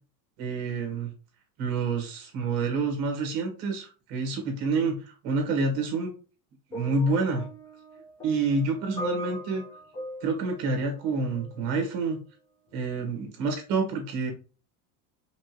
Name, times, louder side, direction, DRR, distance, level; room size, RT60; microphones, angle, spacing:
voice 1, 0.4-1.1 1.6-6.1 6.7-7.4 8.2-9.6 10.2-12.2 12.7-14.3, right 3 dB, 55° right, 3 dB, 1.9 m, -28 dB
sound 1, 6.7-11.8 12.7-12.9, equal, 15° left, 0.3 m, -40 dB
5.2 x 2.6 x 3.2 m, 0.34 s
cardioid pair, 180°, 46 cm